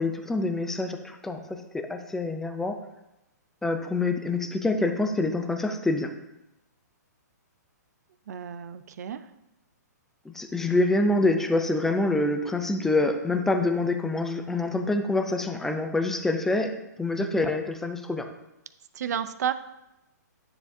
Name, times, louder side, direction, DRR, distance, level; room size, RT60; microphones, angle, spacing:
voice 1, 0.0-2.8 3.6-6.1 10.3-16.7 17.0-18.3, left 2 dB, 5° left, 6 dB, 0.4 m, -26 dB
voice 2, 8.3-9.3 18.9-19.5, right 9 dB, 65° right, 12 dB, 0.5 m, -31 dB
9.7 x 6.8 x 2.7 m, 0.92 s
hypercardioid pair, 155°, 10 cm